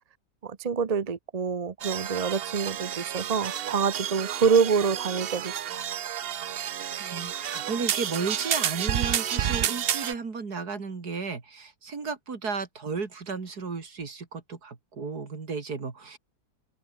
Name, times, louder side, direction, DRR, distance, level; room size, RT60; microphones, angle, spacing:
voice 1, 0.4-5.8, right 6 dB, 35° right, 0.6 m, -26 dB
sound 1, 1.8-10.1, right 10 dB, 85° right, 0.5 m, -30 dB
voice 2, 7.0-16.2, right 4 dB, 60° right, 3.2 m, -34 dB
omnidirectional pair, 1.9 m